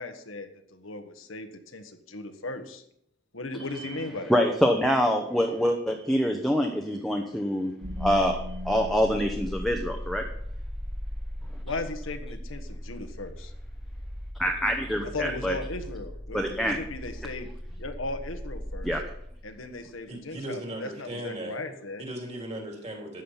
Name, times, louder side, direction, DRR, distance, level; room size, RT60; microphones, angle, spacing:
voice 1, 0.0-2.8 3.3-4.3 11.6-13.5 15.1-17.5 17.8-18.9 19.4-22.0, left 2 dB, 85° left, 6 dB, 1.5 m, -37 dB
voice 2, 4.3-7.7 8.0-10.2 14.4-15.5 16.3-16.8 18.8-19.0, equal, ahead, 2 dB, 0.9 m, -25 dB
sound 1, 7.8-19.9, equal, 70° right, 5.1 m, -38 dB
voice 3, 20.1-21.6 22.0-23.2, right 1 dB, 30° right, 1 dB, 3.2 m, -37 dB
13.5 x 8.8 x 5.7 m, 0.72 s
head